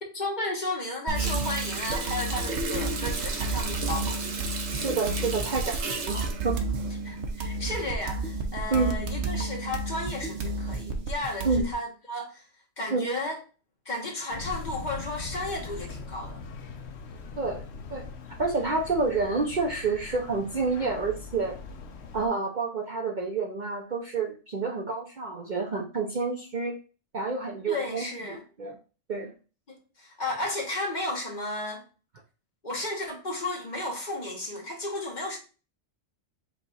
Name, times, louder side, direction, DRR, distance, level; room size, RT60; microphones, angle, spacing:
voice 1, 0.0-4.2 7.0-12.4 12.8-13.4 13.8-16.4 27.7-28.4 29.7-31.8 32.6-35.4, left 2 dB, 40° left, 1.2 m, -33 dB
sound 1, 1.1-11.7, right 3 dB, 65° right, 1.0 m, -32 dB
Water tap faucet, 1.1-7.5 7.9-8.1, right 3 dB, 80° right, 1.2 m, -34 dB
voice 2, 4.7-6.6 8.7-9.0 11.4-11.7 12.9-13.1 17.4-17.7 17.9-18.1 18.4-21.6 22.1-26.8 27.1-28.8 29.1-29.3, right 4 dB, 45° right, 0.7 m, -29 dB
sound 2, 14.3-22.3, left 4 dB, 65° left, 0.9 m, -41 dB
5.1 x 2.4 x 4.0 m
omnidirectional pair, 1.3 m